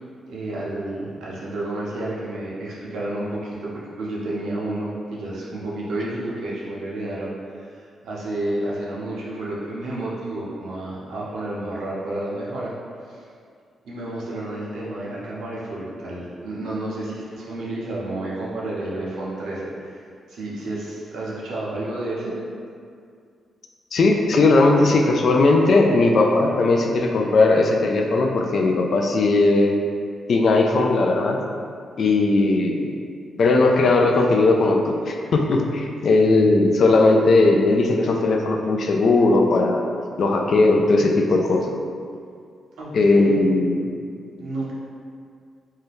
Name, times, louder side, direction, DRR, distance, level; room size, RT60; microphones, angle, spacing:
voice 1, 0.3-12.7 13.1-13.2 13.8-22.4 42.8-43.3 44.4-44.7, right 1 dB, 85° right, -6 dB, 0.7 m, -30 dB
voice 2, 23.9-29.8 30.3-31.4 32.0-32.9 33.4-39.8 40.2-41.8 42.9-43.9, left 2 dB, 60° left, 1 dB, 0.3 m, -18 dB
2.6 x 2.2 x 3.4 m, 2.3 s
cardioid pair, 75°, 0 cm